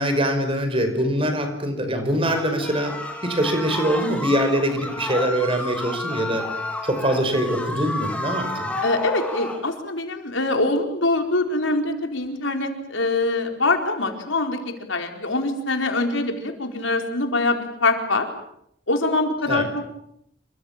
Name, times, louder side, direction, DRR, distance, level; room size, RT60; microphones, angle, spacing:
voice 1, 0.0-2.9 3.2-6.4 6.8-8.7 19.5-19.7, equal, 30° right, 7 dB, 5.4 m, -23 dB
sound 1, 2.2-9.6, left 2 dB, 5° left, 4.4 m, -31 dB
voice 2, 8.8-18.3 18.9-19.9, left 2 dB, 80° left, 5 dB, 4.4 m, -24 dB
28.5 x 24.5 x 7.4 m, 0.73 s
head